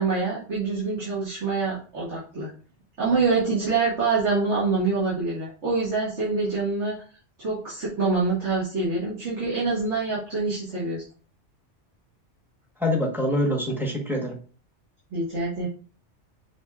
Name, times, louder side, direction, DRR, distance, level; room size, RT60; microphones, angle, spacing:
voice 1, 0.0-2.5 3.0-6.9 7.4-11.0 15.1-15.7, right 4 dB, 70° right, -9 dB, 2.0 m, -25 dB
voice 2, 12.8-14.4, left 1 dB, ahead, 0 dB, 0.9 m, -25 dB
5.7 x 3.4 x 2.3 m, 0.39 s
omnidirectional pair, 1.2 m